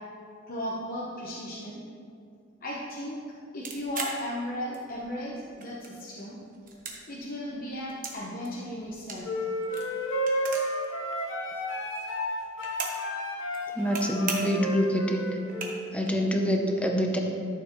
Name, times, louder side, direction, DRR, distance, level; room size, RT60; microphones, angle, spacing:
voice 1, 0.5-1.8 2.6-3.2 3.5-6.4 7.1-9.5, equal, 50° left, -5 dB, 1.0 m, -36 dB
sound 1, 3.6-5.1 5.4-6.2 6.5-8.2 8.4-10.9 11.1-11.2 11.4-13.1 13.4-14.0 14.3-14.7 15.1-15.2 15.4-16.1, right 4 dB, 45° right, 1.2 m, -38 dB
sound 2, 9.2-15.7, equal, 85° left, 1.3 m, -32 dB
voice 2, 13.7-15.3 15.9-17.2, equal, 5° left, 2 dB, 0.7 m, -26 dB
12.0 x 7.0 x 3.1 m, 2.4 s
head